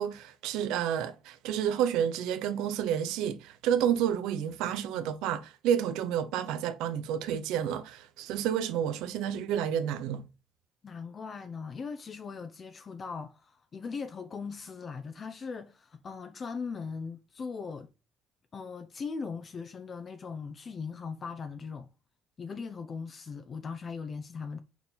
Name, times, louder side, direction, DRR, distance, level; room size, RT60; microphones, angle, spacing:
voice 1, 0.0-10.2, right 9 dB, 80° right, 0.8 m, -30 dB
voice 2, 10.8-17.9 18.5-21.9 22.4-24.6, left 5 dB, 40° left, 0.7 m, -39 dB
4.6 x 4.4 x 5.4 m
cardioid pair, 95°, 0 cm